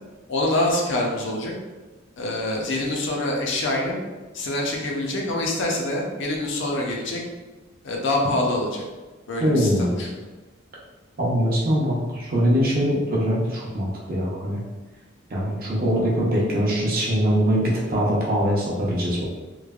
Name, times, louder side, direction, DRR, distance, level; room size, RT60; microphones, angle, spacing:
voice 1, 0.3-1.5 2.2-4.0 4.3-7.2 7.8-8.8 9.3-10.1, left 1 dB, 65° left, -1 dB, 0.5 m, -25 dB
voice 2, 9.4-9.9 11.2-14.6 15.3-19.2, equal, 45° right, -4 dB, 0.6 m, -22 dB
3.1 x 2.1 x 2.3 m, 1.2 s
head